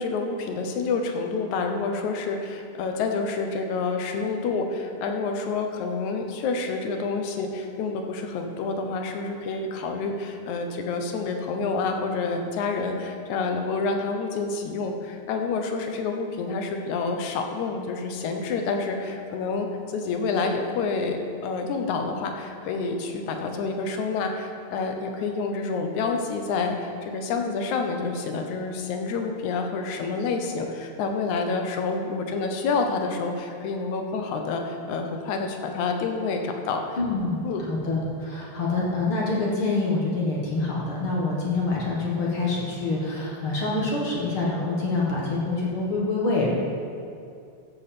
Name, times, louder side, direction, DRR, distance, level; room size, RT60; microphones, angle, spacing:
voice 1, 0.0-36.8 37.4-37.6, left 4 dB, 85° left, 4 dB, 2.4 m, -28 dB
voice 2, 37.0-46.5, left 3 dB, 50° left, -4 dB, 2.3 m, -26 dB
14.0 x 8.2 x 4.3 m, 2.4 s
omnidirectional pair, 3.3 m